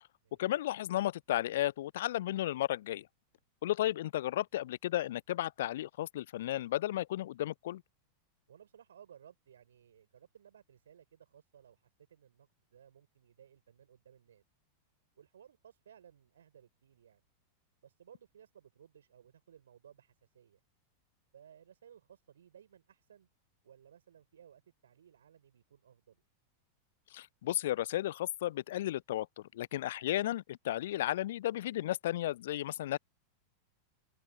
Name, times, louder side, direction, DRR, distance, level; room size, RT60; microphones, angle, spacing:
voice 1, 0.4-3.1 3.6-7.8 27.1-29.3 29.5-33.0, left 14 dB, 55° left, 0.6 m, -33 dB
voice 2, 8.5-14.4 15.2-17.2 17.8-20.6 21.3-23.3 23.6-26.2, right 9 dB, 65° right, 5.9 m, -60 dB
figure-of-eight pair, 90°, 0 cm